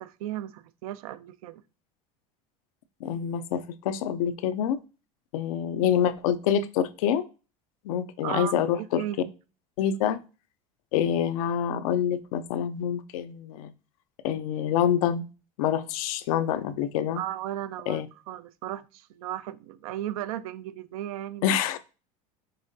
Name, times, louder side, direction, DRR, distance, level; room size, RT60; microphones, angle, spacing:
voice 1, 0.0-1.6 8.2-9.3 17.1-21.6, right 12 dB, 85° right, 0.4 m, -35 dB
voice 2, 3.0-4.8 5.3-7.3 7.8-9.0 9.8-10.2 10.9-13.7 14.2-15.3 15.6-17.2 17.9-18.1 21.4-21.8, left 9 dB, 80° left, 0.5 m, -26 dB
5.4 x 3.6 x 2.7 m
supercardioid pair, 105°, 18 cm